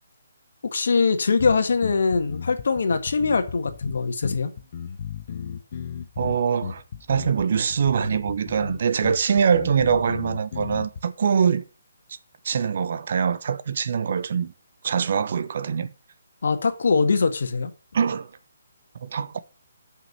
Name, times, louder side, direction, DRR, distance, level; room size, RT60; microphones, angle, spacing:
voice 1, 0.7-4.5 16.4-17.7, left 4 dB, 60° left, 1.7 m, -22 dB
sound 1, 1.4-11.0, left 7 dB, 45° left, 1.3 m, -35 dB
voice 2, 6.2-6.8 7.1-11.6 12.4-14.5 14.8-15.9 17.9-18.3 19.0-19.4, right 7 dB, 50° right, 0.9 m, -23 dB
8.0 x 5.8 x 6.9 m
figure-of-eight pair, 140°, 0 cm